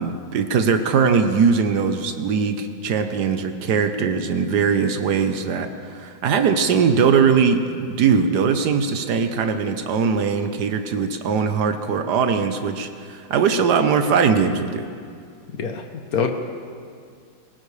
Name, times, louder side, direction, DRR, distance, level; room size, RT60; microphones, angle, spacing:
voice 1, 0.0-14.9, right 6 dB, 60° right, 8 dB, 1.3 m, -20 dB
voice 2, 15.5-16.3, left 6 dB, 55° left, 5 dB, 1.2 m, -25 dB
21.0 x 18.5 x 3.3 m, 2.2 s
omnidirectional pair, 2.2 m